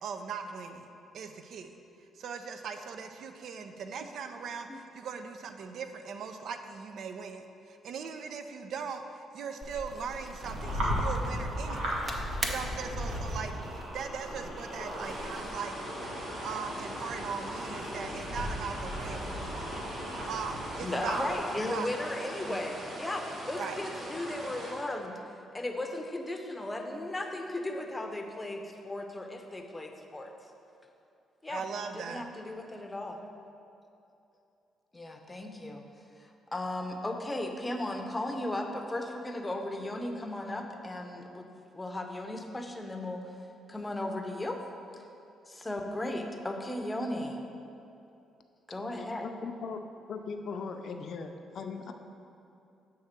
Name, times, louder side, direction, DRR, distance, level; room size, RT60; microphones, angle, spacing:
voice 1, 0.0-0.9 1.1-1.7 2.1-12.0 12.4-15.8 16.4-19.4 20.3-21.3 21.6-21.9 22.3-22.6 23.6-23.8 31.5-32.2, right 6 dB, 70° right, 7 dB, 0.5 m, -39 dB
sound 1, 9.6-15.6, right 1 dB, 25° right, 0.7 m, -42 dB
sound 2, 10.4-21.4, equal, 85° right, 1.4 m, -36 dB
sound 3, 14.9-24.7, right 1 dB, 50° right, 1.4 m, -42 dB
voice 2, 20.8-25.2 25.5-30.3 31.4-31.6 31.9-33.2 34.9-35.8 36.2-41.5 41.7-43.3 43.7-44.6 44.9-45.0 45.5-47.4 48.7-49.3, left 1 dB, 15° left, 4 dB, 0.7 m, -36 dB
voice 3, 49.0-49.8 50.1-51.9, left 5 dB, 60° left, 6 dB, 0.5 m, -39 dB
7.8 x 3.5 x 5.8 m, 2.7 s
cardioid pair, 90°, 0 cm